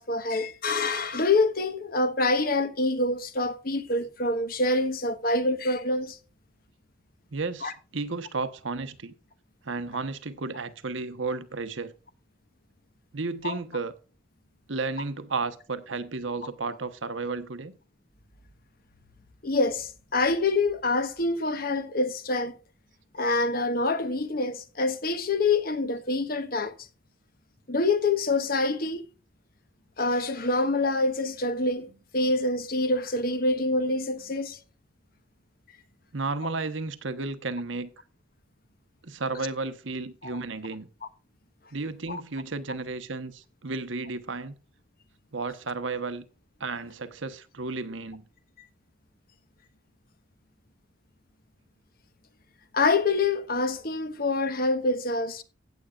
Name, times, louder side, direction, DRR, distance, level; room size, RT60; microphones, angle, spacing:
voice 1, 0.0-6.2 7.6-7.7 13.4-13.6 19.4-22.6 23.1-26.7 27.7-29.1 30.0-31.9 32.1-34.6 40.2-40.4 42.1-42.2 52.7-55.4, left 2 dB, 50° left, 1.2 m, -26 dB
voice 2, 7.3-9.1 9.6-11.9 13.1-13.9 14.7-17.8 36.1-37.9 39.0-40.9 41.7-44.5 45.3-46.2 46.6-48.2, right 3 dB, 80° right, 1.1 m, -33 dB
16.0 x 8.5 x 2.4 m
head